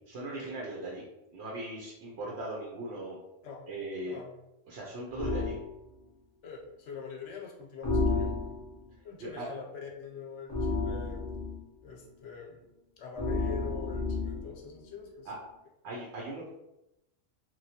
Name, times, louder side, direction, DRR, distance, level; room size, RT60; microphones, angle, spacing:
voice 1, 0.1-1.1 1.3-3.2 3.7-4.2 4.7-5.5 9.2-9.5 15.3-15.4 15.8-16.5, right 1 dB, 65° right, -3 dB, 0.8 m, -39 dB
voice 2, 4.0-4.4 6.4-8.5 9.0-11.2 11.8-12.7 13.0-15.3, left 5 dB, 75° left, 0 dB, 0.9 m, -44 dB
sound 1, 5.2-5.6 7.8-8.8 10.5-11.6 13.2-14.5, left 3 dB, 20° left, 0.4 m, -31 dB
2.9 x 2.3 x 2.8 m, 0.91 s
omnidirectional pair, 1.3 m